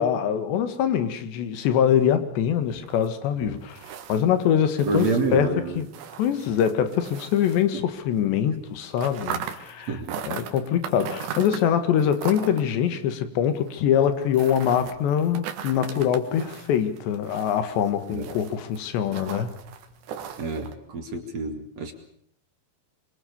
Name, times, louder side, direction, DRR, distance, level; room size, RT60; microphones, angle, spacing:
voice 1, 0.0-5.9 6.2-10.0 10.2-19.5, left 9 dB, 85° left, 4.0 m, -24 dB
sound 1, 2.2-8.2 8.5-20.7, right 8 dB, 85° right, 4.0 m, -40 dB
voice 2, 4.9-5.8 7.7-7.8 9.9-10.2 18.1-18.3 20.4-21.9, right 3 dB, 45° right, 2.9 m, -28 dB
26.0 x 23.5 x 6.9 m
omnidirectional pair, 5.0 m